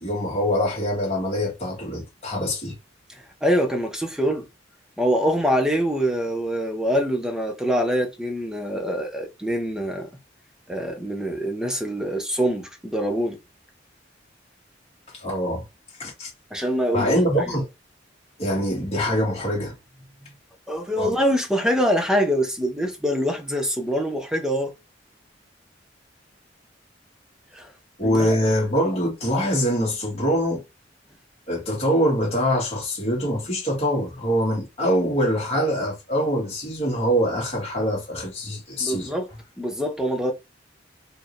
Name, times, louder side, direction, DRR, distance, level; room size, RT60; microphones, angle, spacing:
voice 1, 0.0-2.8 15.1-15.6 16.0-16.3 16.9-17.7 18.4-19.8 21.0-21.2 28.0-30.6 31.5-39.1, equal, 35° left, 2.3 m, -24 dB
voice 2, 3.4-4.4 5.0-10.1 10.7-13.4 16.5-17.1 20.7-24.7 27.5-27.7 28.0-28.3 38.8-39.3 39.6-40.3, equal, 5° right, 0.9 m, -24 dB
4.4 x 2.9 x 3.3 m
head